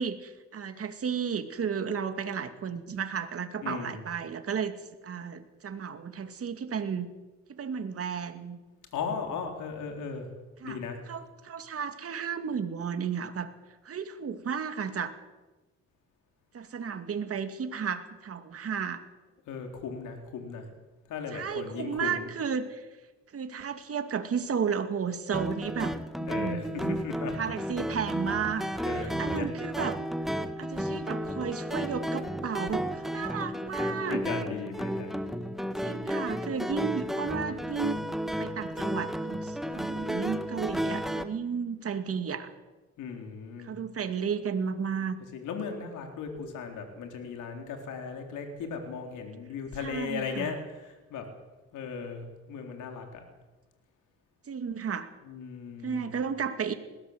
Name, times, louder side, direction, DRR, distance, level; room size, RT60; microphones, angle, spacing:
voice 1, 0.0-4.7 5.0-7.1 7.5-8.6 10.6-13.5 13.8-15.1 16.5-19.0 21.3-22.9 23.3-26.9 27.3-30.0 30.6-34.2 35.8-38.0 38.4-42.5 43.6-45.2 49.8-50.5 54.5-55.1 55.8-56.7, right 6 dB, 50° right, 8 dB, 2.4 m, -33 dB
voice 2, 3.6-4.0 8.9-10.3 10.6-11.0 19.5-20.7 21.1-22.3 26.3-27.4 28.8-29.5 34.1-35.5 43.0-43.7 45.3-51.3 51.7-53.2 55.3-56.2, left 5 dB, 85° left, 4 dB, 3.9 m, -37 dB
sound 1, 25.3-41.2, equal, ahead, 1.6 m, -33 dB
20.5 x 18.0 x 8.1 m, 1.2 s
cardioid pair, 90°, 30 cm